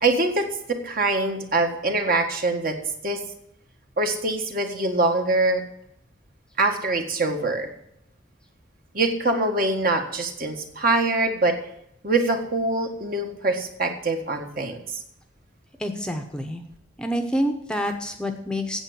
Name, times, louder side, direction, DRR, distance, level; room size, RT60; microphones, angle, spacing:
voice 1, 0.0-2.8 3.0-3.2 4.0-5.6 6.6-7.7 8.9-11.6 12.0-14.8, right 2 dB, 45° right, 4 dB, 1.6 m, -24 dB
voice 2, 15.8-16.6 17.0-18.8, equal, 5° left, 6 dB, 0.9 m, -27 dB
8.9 x 8.0 x 8.5 m, 0.76 s
head